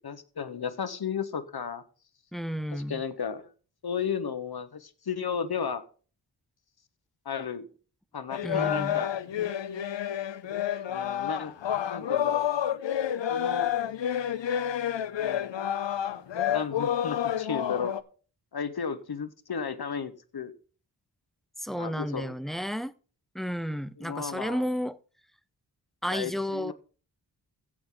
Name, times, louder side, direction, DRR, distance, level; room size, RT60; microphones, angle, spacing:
voice 1, 0.0-1.8 2.7-3.5 3.8-5.8 7.2-7.7 8.1-9.1 10.9-11.5 11.9-12.5 13.3-13.7 15.2-15.6 16.5-17.9 18.5-20.5 21.7-22.3 24.0-24.6 26.1-26.7, left 6 dB, 60° left, 11 dB, 1.3 m, -34 dB
voice 2, 2.3-3.0 8.4-9.0 21.6-22.9 23.3-25.0 26.0-26.7, equal, ahead, 15 dB, 0.6 m, -32 dB
sound 1, 8.3-18.0, left 10 dB, 85° left, 0.8 m, -29 dB
15.5 x 6.3 x 3.9 m, 0.39 s
wide cardioid pair, 70°, 43 cm